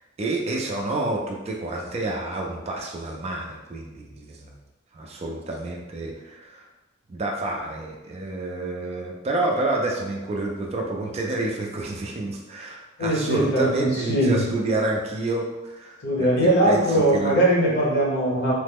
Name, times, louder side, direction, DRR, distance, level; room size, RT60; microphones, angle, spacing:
voice 1, 0.0-4.5 4.9-6.6 7.1-17.4, right 2 dB, 30° right, 0 dB, 0.3 m, -29 dB
voice 2, 13.0-14.4 16.0-18.5, right 1 dB, 55° left, -4 dB, 0.9 m, -21 dB
3.1 x 2.0 x 3.4 m, 1.1 s
head